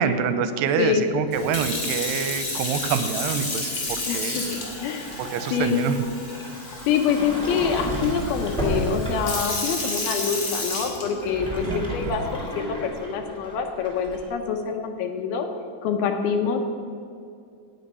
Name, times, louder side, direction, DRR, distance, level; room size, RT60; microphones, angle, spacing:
voice 1, 0.0-4.4 5.2-6.0 11.7-11.8 12.1-12.2, right 7 dB, 85° right, 10 dB, 2.7 m, -26 dB
Sink (filling or washing) / Fill (with liquid), 1.3-11.5 12.2-12.5, left 2 dB, 35° left, 2.9 m, -31 dB
voice 2, 4.1-5.2 5.5-5.9 6.9-15.5 15.8-16.6, left 6 dB, 75° left, 5 dB, 2.5 m, -26 dB
Sliding door, 7.0-9.5 11.1-14.3, equal, 5° left, 0.8 m, -31 dB
18.0 x 6.1 x 5.5 m, 2.4 s
omnidirectional pair, 4.8 m